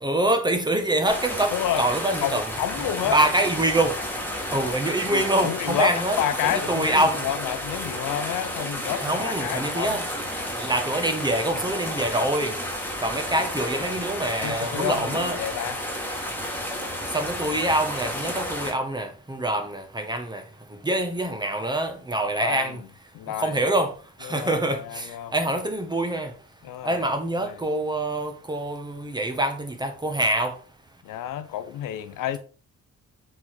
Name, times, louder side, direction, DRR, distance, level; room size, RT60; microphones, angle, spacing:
voice 1, 0.0-2.5 3.0-3.9 4.5-7.3 9.0-12.6 13.0-15.4 17.1-20.4 20.8-22.8 23.3-23.9 24.2-26.3 26.8-30.5, right 1 dB, 15° right, 1.6 m, -25 dB
sound 1, 1.1-18.7, equal, 5° left, 2.2 m, -31 dB
voice 2, 1.5-1.8 2.2-3.2 5.1-10.0 13.8-13.9 14.4-15.8 22.4-22.8 23.1-23.6 24.2-25.3 26.6-27.0 27.4-27.6 31.0-32.4, left 11 dB, 80° left, 0.8 m, -30 dB
7.4 x 4.2 x 4.7 m
cardioid pair, 105°, 32 cm